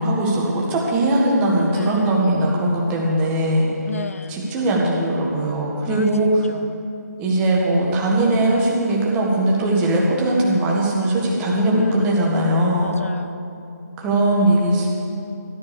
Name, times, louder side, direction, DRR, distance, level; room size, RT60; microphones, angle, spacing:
voice 1, 0.0-3.7 4.3-6.4 7.2-12.9 14.0-14.9, right 1 dB, 10° right, -3 dB, 1.6 m, -20 dB
voice 2, 1.7-2.1 3.8-4.4 5.9-6.1 6.5-6.8 11.7-12.3 12.8-13.4, left 4 dB, 50° left, 12 dB, 0.4 m, -30 dB
13.5 x 9.2 x 6.9 m, 2.8 s
figure-of-eight pair, 160°, 9 cm